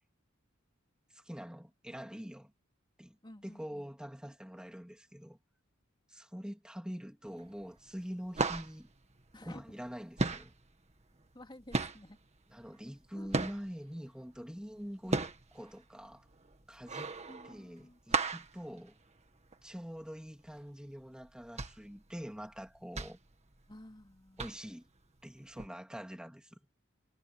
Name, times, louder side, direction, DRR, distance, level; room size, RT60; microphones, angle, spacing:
voice 1, 1.1-2.5 3.0-3.2 3.4-5.4 6.1-8.9 9.4-10.5 12.5-15.2 15.5-16.3 16.7-17.2 17.4-19.0 19.6-23.2 24.4-24.9 25.2-26.6, equal, 5° right, 2.8 m, -45 dB
voice 2, 3.2-3.9 9.3-9.6 11.3-12.2 13.2-13.3 17.3-18.0 23.7-24.5, left 1 dB, 25° left, 2.6 m, -52 dB
sound 1, 7.3-7.7 8.0-9.9 10.2-13.9 14.4-19.6 20.0-20.1 20.5-20.7 21.2-24.0 24.4-24.9 25.6-25.7, right 3 dB, 35° right, 1.8 m, -35 dB
head